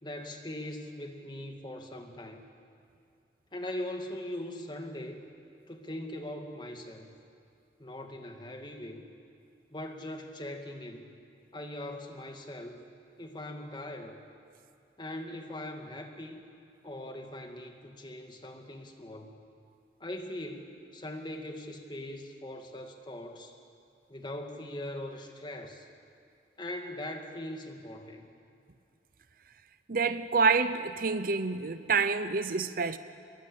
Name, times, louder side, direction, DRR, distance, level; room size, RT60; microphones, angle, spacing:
voice 1, 0.0-2.4 3.5-5.2 5.7-7.1 7.8-9.1 9.7-11.1 11.5-12.8 13.2-14.2 15.0-16.4 16.8-19.4 20.0-23.6 24.1-25.9 26.6-28.3, left 1 dB, 25° left, 2.1 m, -41 dB
voice 2, 29.9-33.0, right 4 dB, 50° right, 0.8 m, -27 dB
27.0 x 22.0 x 8.6 m
head